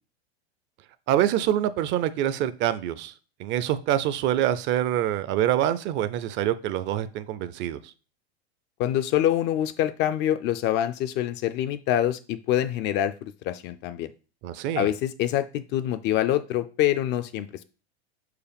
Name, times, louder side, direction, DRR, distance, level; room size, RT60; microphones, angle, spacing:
voice 1, 1.1-3.1 3.4-7.9 14.4-14.9, right 11 dB, 35° right, 14 dB, 0.5 m, -25 dB
voice 2, 8.8-14.1 14.7-17.6, left 12 dB, 35° left, 12 dB, 0.4 m, -25 dB
5.0 x 4.8 x 5.1 m, 0.36 s
supercardioid pair, 125°, 32 cm